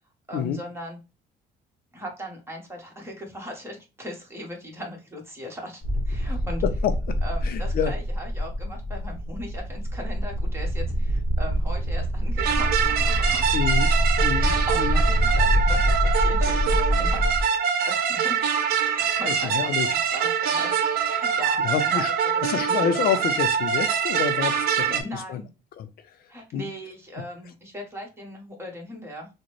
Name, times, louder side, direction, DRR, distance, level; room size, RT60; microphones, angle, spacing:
voice 1, 0.3-1.0 1.9-6.6 7.2-13.5 14.3-17.3 17.8-18.4 18.8-22.0 22.3-22.4 24.8-25.5 26.3-29.3, equal, 15° right, 1 dB, 1.3 m, -38 dB
sound 1, 5.8-17.4, equal, 25° left, 1.0 m, -25 dB
voice 2, 6.6-7.9 13.5-13.9 14.2-15.0 19.2-20.0 21.1-21.2 21.6-22.1 22.4-25.4 25.8-26.2 26.5-26.7, left 8 dB, 60° left, 10 dB, 0.5 m, -28 dB
sound 2, 12.4-25.0, right 7 dB, 65° right, 0.8 m, -24 dB
3.8 x 2.1 x 3.0 m, 0.28 s
cardioid pair, 110°, 17 cm